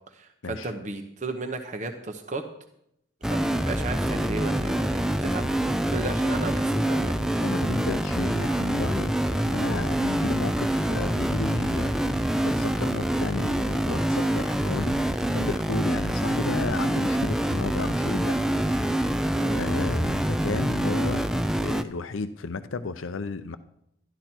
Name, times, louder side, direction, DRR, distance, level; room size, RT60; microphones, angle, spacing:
voice 1, 0.1-2.4 3.3-5.5 5.9-7.1 19.3-19.6, right 2 dB, 40° right, 5 dB, 0.9 m, -34 dB
sound 1, 3.2-21.8, right 1 dB, 5° right, 0.4 m, -26 dB
voice 2, 7.4-18.4 18.7-19.2 19.5-21.2 21.6-23.6, left 4 dB, 90° left, 11 dB, 0.6 m, -33 dB
12.0 x 12.0 x 4.4 m, 0.75 s
head